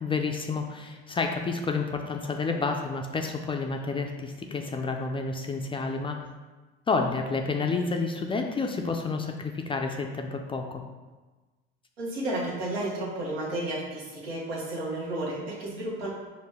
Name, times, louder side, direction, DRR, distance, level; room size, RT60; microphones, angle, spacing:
voice 1, 0.0-6.2 6.9-10.8, left 4 dB, 20° left, 3 dB, 0.3 m, -30 dB
voice 2, 12.0-16.1, right 1 dB, 90° right, -4 dB, 1.1 m, -32 dB
4.9 x 2.2 x 3.5 m, 1.2 s
hypercardioid pair, 80°, 29 cm